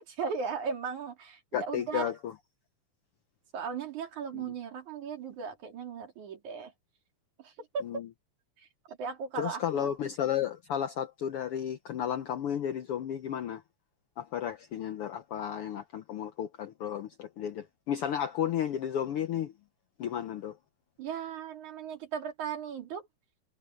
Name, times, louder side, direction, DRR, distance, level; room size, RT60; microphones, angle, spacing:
voice 1, 0.0-2.1 3.5-6.7 7.4-7.9 8.6-9.9 21.0-23.1, right 6 dB, 75° right, 4.5 m, -37 dB
voice 2, 1.5-2.3 4.3-4.4 7.8-8.1 9.4-13.6 14.2-19.5 20.0-20.6, left 9 dB, 70° left, 1.4 m, -33 dB
omnidirectional pair, 3.5 m